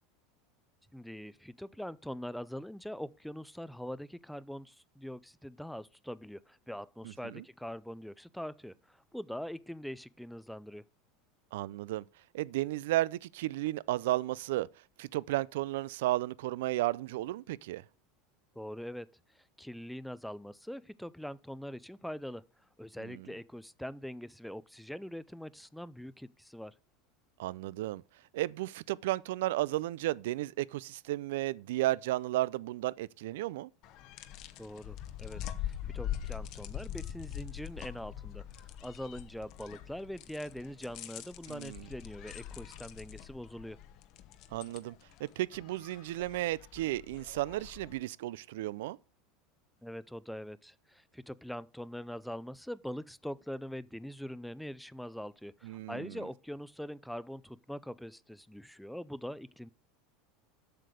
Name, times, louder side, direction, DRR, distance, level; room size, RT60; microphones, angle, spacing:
voice 1, 0.9-10.8 18.6-19.1 19.6-22.4 22.8-26.7 34.6-43.8 49.8-59.7, equal, ahead, 0.3 m, -43 dB
voice 2, 7.0-7.4 11.5-12.0 12.3-14.7 15.0-17.8 23.0-23.3 27.4-28.0 28.3-33.7 41.5-41.9 44.5-49.0 55.6-56.2, right 16 dB, 80° right, 0.3 m, -33 dB
sound 1, 33.8-48.0, left 11 dB, 50° left, 0.8 m, -43 dB
7.7 x 6.6 x 4.9 m
supercardioid pair, 145°, 0 cm